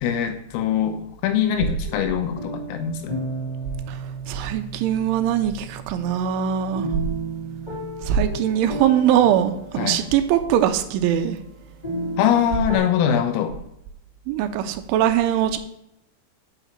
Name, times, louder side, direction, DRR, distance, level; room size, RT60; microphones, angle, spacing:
voice 1, 0.0-3.2 9.8-10.0 12.2-13.6, left 9 dB, 90° left, 6 dB, 3.7 m, -23 dB
sound 1, 1.8-12.8, right 2 dB, 10° left, 3.7 m, -34 dB
voice 2, 4.3-6.9 8.0-11.4 14.3-15.6, right 10 dB, 80° right, 7 dB, 2.9 m, -21 dB
6.9 x 6.2 x 7.4 m, 0.78 s
omnidirectional pair, 5.9 m